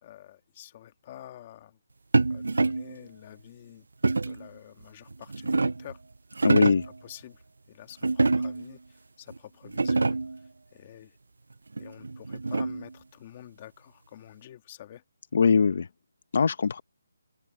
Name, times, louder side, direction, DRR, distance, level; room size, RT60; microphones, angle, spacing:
voice 1, 0.0-1.8 2.3-3.9 4.2-6.0 6.9-7.4 7.7-11.2 11.8-15.0, left 12 dB, 20° left, 1.8 m, -48 dB
sound 1, 2.1-3.0 4.0-4.5 5.1-5.9 6.3-7.0 8.0-8.7 9.3-9.4 9.7-10.4 11.8-12.9, right 3 dB, 85° right, 0.4 m, -26 dB
voice 2, 6.4-6.9 15.3-15.9 16.3-16.8, left 5 dB, 40° left, 0.7 m, -21 dB
open air
hypercardioid pair, 180°, 0 cm